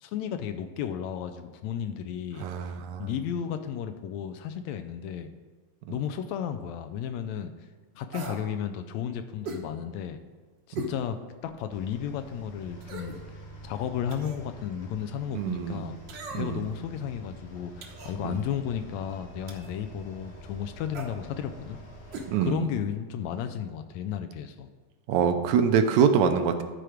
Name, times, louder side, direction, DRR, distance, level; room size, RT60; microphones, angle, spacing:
voice 1, 0.0-2.5 3.0-5.3 5.9-7.5 8.0-10.2 10.7-11.2 11.4-13.2 13.6-16.0 16.3-21.8 22.4-24.7, left 9 dB, 80° left, 8 dB, 1.8 m, -33 dB
voice 2, 2.4-3.1 5.9-6.0 10.7-10.9 15.3-15.9 16.3-16.7 18.2-18.4 22.3-22.7 25.1-26.6, right 7 dB, 80° right, 7 dB, 2.0 m, -25 dB
sound 1, 8.1-8.5 9.4-9.7 10.8-11.0 11.5-11.6 12.8-13.2 14.1-14.5 16.1-16.6 17.8-18.2 19.5-19.8 20.9-21.1 22.1-22.3 22.6-22.7, right 2 dB, 60° right, 1.2 m, -38 dB
sound 2, 11.7-22.4, right 2 dB, 45° left, 1.4 m, -47 dB
13.0 x 4.5 x 5.0 m, 1.4 s
omnidirectional pair, 3.3 m